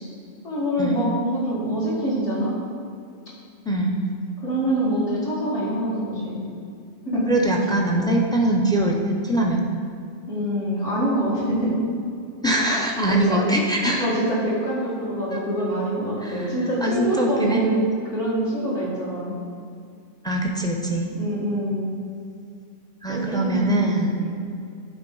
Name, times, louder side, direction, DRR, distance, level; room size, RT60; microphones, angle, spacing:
voice 1, 0.4-2.5 4.4-6.5 7.0-7.3 10.3-11.8 13.3-13.4 14.0-17.8 18.1-19.3 21.1-21.9 23.1-23.8 24.2-24.3, right 1 dB, 60° left, -8 dB, 2.5 m, -25 dB
voice 2, 3.7-4.0 7.3-9.0 9.2-9.6 12.4-14.1 15.3-15.4 16.2-16.5 16.8-17.6 20.2-21.1 23.0-24.2, right 1 dB, 5° left, 0 dB, 0.3 m, -22 dB
10.0 x 4.6 x 3.9 m, 2.3 s
omnidirectional pair, 1.4 m